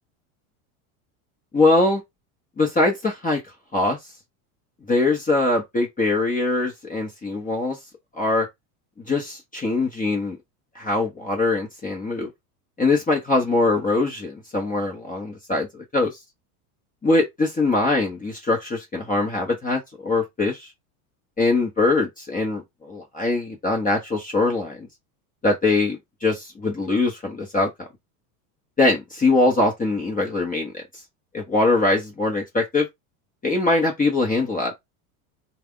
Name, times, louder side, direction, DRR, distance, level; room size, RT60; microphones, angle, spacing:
voice 1, 1.5-2.0 2.6-3.4 3.7-4.1 4.9-7.8 8.1-8.5 9.1-10.4 10.7-12.3 12.8-16.2 17.0-20.7 21.4-24.9 25.4-27.9 28.8-31.0 31.3-32.9 33.4-34.7, left 2 dB, 20° left, 0.9 m, -22 dB
3.4 x 2.4 x 3.7 m
supercardioid pair, 105°, 46 cm